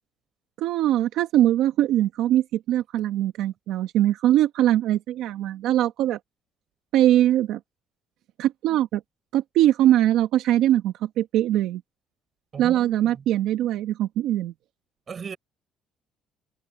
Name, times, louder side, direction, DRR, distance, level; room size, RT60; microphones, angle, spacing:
voice 1, 0.6-6.2 6.9-7.6 8.4-9.0 9.3-11.8 12.6-14.5, right 13 dB, 75° right, 1.3 m, -22 dB
voice 2, 12.5-13.2 15.1-15.4, right 6 dB, 35° right, 6.7 m, -37 dB
cardioid pair, 145°, 0 cm